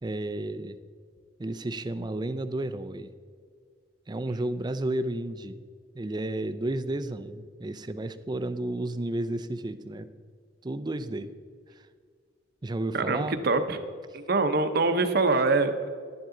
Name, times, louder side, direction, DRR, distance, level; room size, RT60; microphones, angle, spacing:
voice 1, 0.0-0.8 1.4-3.1 4.1-5.6 5.9-10.1 10.6-11.3 11.8-11.9 12.6-13.4 14.1-14.2, right 1 dB, 20° right, 11 dB, 0.4 m, -32 dB
voice 2, 12.9-13.8 14.1-15.9, right 3 dB, 55° right, 9 dB, 0.8 m, -24 dB
11.0 x 10.5 x 3.8 m, 2.1 s
head